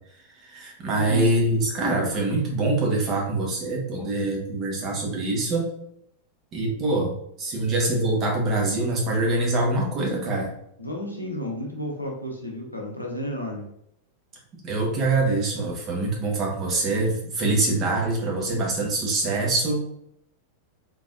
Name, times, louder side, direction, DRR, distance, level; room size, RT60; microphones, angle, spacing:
voice 1, 0.4-5.7 6.5-10.5 14.6-19.8, right 2 dB, 30° right, -1 dB, 1.2 m, -24 dB
voice 2, 0.9-1.3 10.8-13.7, equal, 85° left, 0 dB, 0.8 m, -32 dB
3.7 x 3.1 x 2.5 m, 0.73 s
figure-of-eight pair, 90°, 0 cm